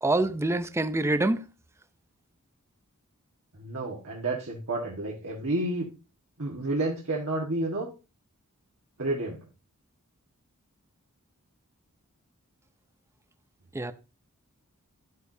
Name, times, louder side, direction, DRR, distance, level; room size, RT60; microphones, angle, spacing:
voice 1, 0.0-1.4 13.7-13.9, right 2 dB, 10° right, 0.4 m, -25 dB
voice 2, 3.5-5.9 6.4-7.9 9.0-9.4, right 2 dB, 65° right, 1.5 m, -30 dB
11.5 x 8.1 x 2.7 m
head